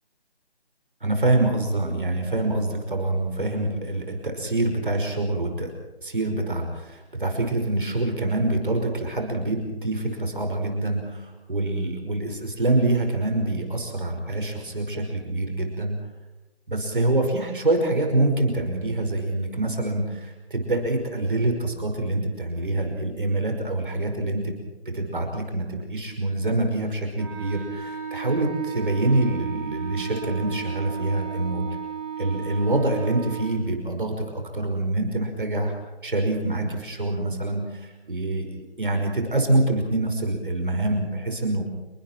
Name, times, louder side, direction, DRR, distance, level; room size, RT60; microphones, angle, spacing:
voice 1, 1.0-5.7 6.0-16.0 16.7-24.6 24.9-31.7 32.2-35.7 36.0-41.6, right 2 dB, 50° right, 4 dB, 5.3 m, -25 dB
Wind instrument woodwind instrument, 27.2-33.5, right 8 dB, 25° right, 5.3 m, -34 dB
29.0 x 23.0 x 4.6 m, 1.1 s
figure-of-eight pair, 175°, 33 cm